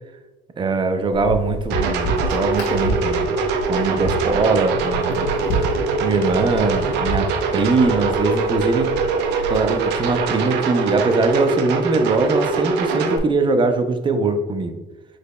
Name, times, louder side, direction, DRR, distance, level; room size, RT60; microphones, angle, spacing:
voice 1, 0.6-5.3 6.0-8.9 9.5-14.8, right 3 dB, 30° right, 7 dB, 0.5 m, -21 dB
sound 1, 1.1-10.3, equal, 80° left, 1.5 m, -30 dB
sound 2, 1.7-13.2, right 4 dB, 90° right, 0.6 m, -22 dB
5.1 x 4.2 x 2.2 m, 1.2 s
cardioid pair, 110°, 17 cm